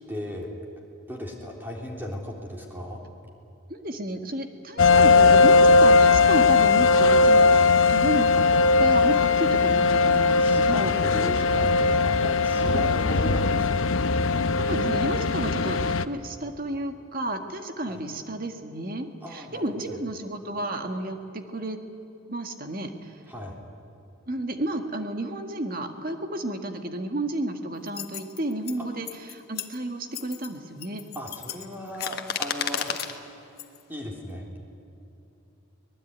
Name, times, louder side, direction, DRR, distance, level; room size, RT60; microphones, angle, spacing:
voice 1, 0.1-0.5 1.1-3.0 10.1-13.9 17.8-18.0 19.2-20.0 23.3-23.6 28.8-28.9 31.1-33.0 33.9-34.5, equal, 10° right, -1 dB, 3.5 m, -36 dB
voice 2, 3.7-8.5 8.8-10.9 14.6-21.8 22.3-23.1 24.3-31.0, right 1 dB, 45° right, 5 dB, 1.8 m, -32 dB
sound 1, 4.8-16.0, left 4 dB, 75° left, 0.8 m, -19 dB
sound 2, 27.9-28.8 29.1-29.8 30.1-30.5 30.8-33.2 33.6-33.8, left 8 dB, 50° left, 1.5 m, -33 dB
24.5 x 20.0 x 9.5 m, 2.9 s
head